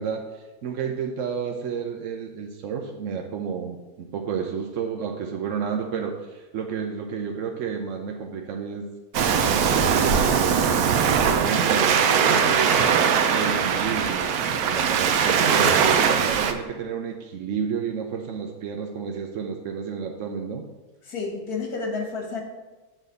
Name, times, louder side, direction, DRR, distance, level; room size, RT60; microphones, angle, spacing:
voice 1, 0.0-8.9 9.5-10.6 11.1-14.3 14.6-20.7, right 6 dB, 65° right, 2 dB, 1.0 m, -31 dB
Waves surf, 9.1-16.5, right 7 dB, 85° right, 1.2 m, -21 dB
voice 2, 21.0-22.4, left 4 dB, 85° left, 1 dB, 2.0 m, -30 dB
7.4 x 4.2 x 6.6 m, 1.2 s
omnidirectional pair, 1.6 m